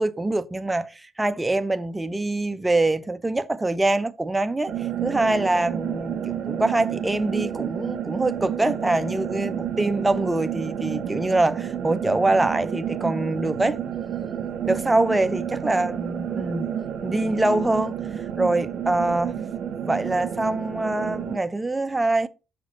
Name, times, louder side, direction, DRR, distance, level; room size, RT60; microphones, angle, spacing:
voice 1, 0.0-4.7 5.0-13.8 14.7-16.7 17.0-18.0 18.4-19.4 19.8-22.3, right 2 dB, 15° right, 0.5 m, -24 dB
sound 1, 4.7-21.4, right 9 dB, 75° right, 1.0 m, -30 dB
7.2 x 5.9 x 2.9 m
cardioid pair, 90°, 0 cm